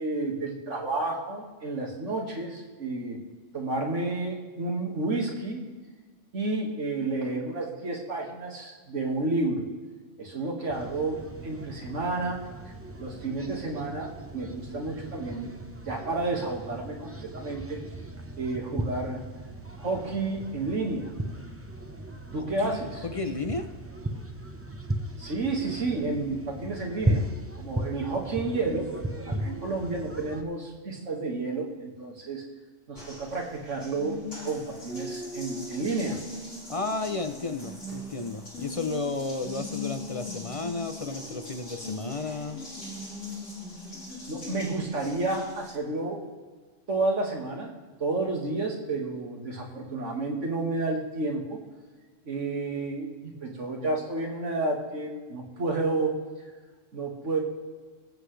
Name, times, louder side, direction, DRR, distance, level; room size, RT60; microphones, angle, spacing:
voice 1, 0.0-3.2 3.5-5.6 6.3-9.7 10.2-12.4 13.0-15.5 15.8-17.8 18.4-19.2 19.8-21.1 22.3-23.0 25.2-27.2 27.6-32.4 32.9-36.2 44.3-46.2 46.9-47.7 48.0-51.6 52.3-56.2 56.9-57.4, right 2 dB, 75° right, 0 dB, 2.3 m, -31 dB
sound 1, 10.7-30.4, right 1 dB, 10° right, 0.9 m, -36 dB
voice 2, 22.3-23.7 36.7-42.6, left 3 dB, 35° left, 7 dB, 0.6 m, -33 dB
Water tap faucet, 33.0-45.8, left 2 dB, 70° left, 3.0 m, -40 dB
22.0 x 8.1 x 3.3 m, 1.4 s
omnidirectional pair, 1.3 m